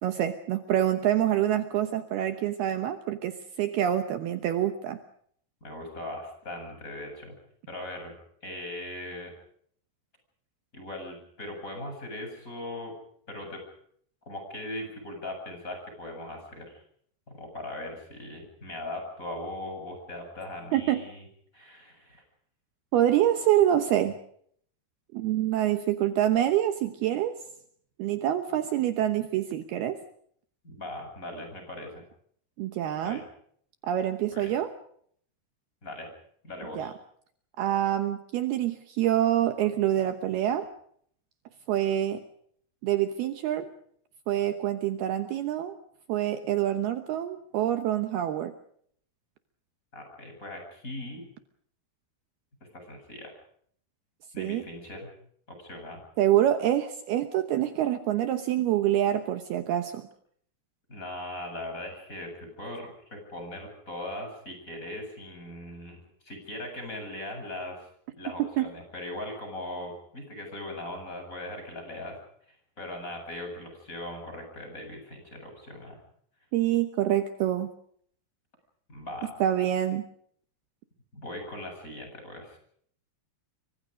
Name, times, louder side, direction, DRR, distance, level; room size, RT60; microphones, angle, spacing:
voice 1, 0.0-5.0 20.7-21.0 22.9-24.2 25.1-27.4 28.0-30.0 32.6-33.2 33.8-34.7 36.8-36.9 37.6-40.7 41.7-42.2 42.8-43.7 44.3-45.8 46.1-48.5 54.4-54.6 56.2-60.0 68.6-68.7 76.5-77.7 79.4-80.1, right 12 dB, 70° right, 8 dB, 2.8 m, -26 dB
voice 2, 5.6-7.4 7.7-9.3 10.7-12.9 13.3-13.6 14.3-16.8 17.3-21.3 21.5-22.2 30.6-31.9 33.0-33.2 34.3-34.5 35.8-36.1 36.4-36.9 49.9-51.2 52.7-53.3 54.3-55.1 55.5-56.0 60.9-67.9 68.2-72.2 72.8-76.0 78.9-79.3 81.1-82.6, left 1 dB, 15° left, 3 dB, 8.3 m, -39 dB
28.0 x 24.5 x 5.2 m, 0.65 s
omnidirectional pair, 5.0 m